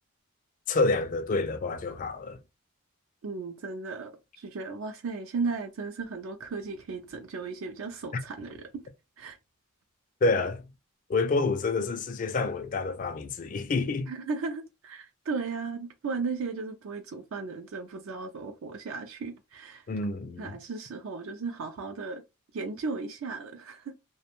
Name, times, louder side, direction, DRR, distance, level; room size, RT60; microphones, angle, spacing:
voice 1, 0.7-2.4 8.1-8.2 10.2-10.6 11.1-14.1 19.9-20.6, left 3 dB, 40° left, 0.3 m, -28 dB
voice 2, 3.2-8.7 9.2-9.4 14.1-19.9 20.4-22.2 22.5-23.9, right 4 dB, 65° right, 0.4 m, -35 dB
2.5 x 2.2 x 2.8 m
head